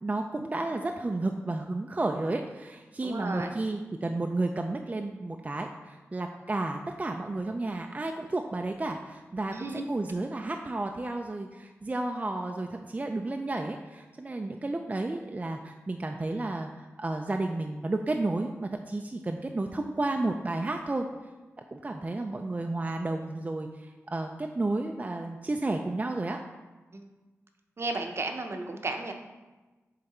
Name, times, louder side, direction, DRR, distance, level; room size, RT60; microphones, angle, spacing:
voice 1, 0.0-9.5 9.8-21.1 21.7-26.4, right 2 dB, 30° right, 4 dB, 0.4 m, -32 dB
voice 2, 3.0-3.5 9.5-9.9 26.9-27.1 27.8-29.1, right 2 dB, 55° right, 4 dB, 0.7 m, -34 dB
7.6 x 3.4 x 4.2 m, 1.2 s
wide cardioid pair, 70°, 5 cm